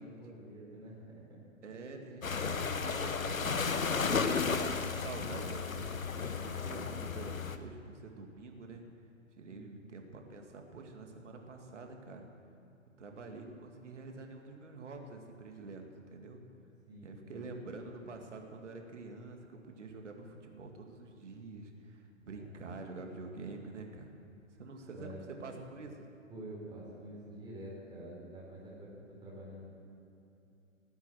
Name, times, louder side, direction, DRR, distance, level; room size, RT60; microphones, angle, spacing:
voice 1, 0.0-1.4 9.5-9.8 16.9-17.3 22.3-22.8 24.9-25.2 26.3-29.7, right 1 dB, 10° right, -4 dB, 4.1 m, -48 dB
voice 2, 1.6-8.8 9.4-12.3 13.0-16.4 17.0-24.1 24.5-25.1 25.4-26.0, right 3 dB, 60° right, 3 dB, 2.2 m, -47 dB
sound 1, 2.2-7.6, left 5 dB, 85° left, 1.0 m, -33 dB
17.0 x 9.5 x 7.5 m, 2.9 s
figure-of-eight pair, 125°, 39 cm